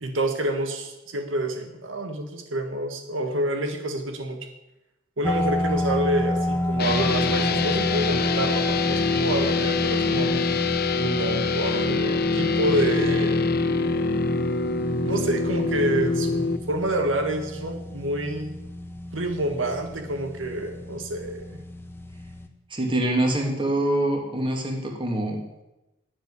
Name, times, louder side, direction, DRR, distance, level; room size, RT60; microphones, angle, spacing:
voice 1, 0.0-4.4 5.2-10.3 11.0-13.5 15.0-18.5 19.1-21.6, right 1 dB, 85° right, 5 dB, 1.7 m, -28 dB
sound 1, 5.2-22.5, left 1 dB, 10° left, 1.1 m, -31 dB
sound 2, 6.8-16.6, left 3 dB, 55° left, 0.9 m, -24 dB
voice 2, 22.7-25.6, right 1 dB, 25° right, 2 dB, 2.5 m, -25 dB
11.5 x 7.9 x 9.8 m, 0.97 s
head